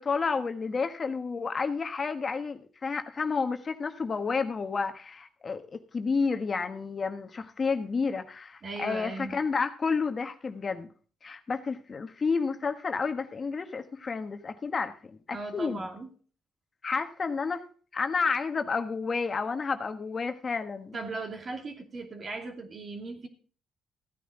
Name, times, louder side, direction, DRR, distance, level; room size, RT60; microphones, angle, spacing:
voice 1, 0.0-10.9 11.2-14.9 15.3-15.8 16.8-17.6 17.9-21.0, left 4 dB, 40° left, 7 dB, 1.3 m, -30 dB
voice 2, 8.6-9.4 15.3-16.1 20.9-23.3, right 3 dB, 45° right, 3 dB, 2.6 m, -38 dB
15.5 x 9.4 x 3.9 m, 0.41 s
cardioid pair, 90°, 0 cm